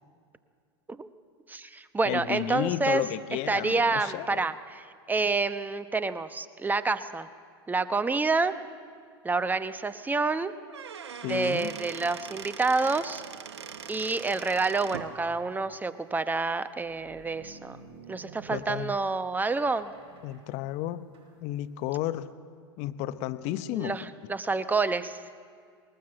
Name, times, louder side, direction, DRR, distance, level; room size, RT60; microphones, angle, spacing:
voice 1, 1.5-3.0 3.5-7.3 7.7-8.5 9.2-10.5 11.2-13.2 13.9-17.8 18.1-19.9 23.7-25.2, right 3 dB, 10° right, 12 dB, 0.9 m, -28 dB
voice 2, 2.0-4.5 11.2-11.8 18.5-18.9 20.2-21.1 21.4-22.3 22.8-23.9, left 13 dB, 55° left, 14 dB, 0.9 m, -32 dB
Squeak / Wood, 10.5-15.1, right 7 dB, 90° right, 1.1 m, -42 dB
sound 1, 14.9-16.2 16.8-19.2 19.6-21.4, right 5 dB, 35° right, 5.5 m, -51 dB
20.0 x 19.0 x 7.8 m, 2.2 s
hypercardioid pair, 100°, 14 cm